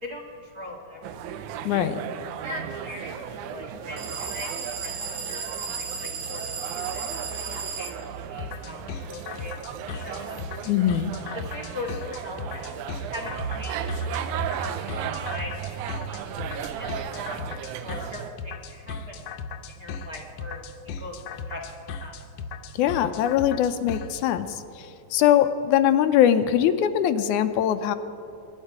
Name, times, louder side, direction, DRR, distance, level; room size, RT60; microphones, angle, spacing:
voice 1, 0.0-1.1 2.3-4.5 4.8-5.0 5.3-5.5 5.8-6.4 6.7-7.0 7.3-7.9 8.3-9.5 9.9-10.4 11.3-12.8 13.1-14.0 14.4-16.5 16.8-17.3 17.8-19.2 19.7-21.6 22.0-22.2, left 1 dB, 35° right, 1 dB, 1.8 m, -40 dB
sound 1, 1.0-18.3, right 8 dB, 90° right, 2.1 m, -35 dB
voice 2, 1.7-2.0 10.7-11.1 22.7-28.0, left 10 dB, 90° left, 9 dB, 2.1 m, -22 dB
sound 2, 4.0-8.0, right 5 dB, 60° right, 2.1 m, -34 dB
sound 3, 8.4-24.2, left 5 dB, 70° left, 1.9 m, -36 dB
23.5 x 10.5 x 4.8 m, 2.6 s
omnidirectional pair, 3.4 m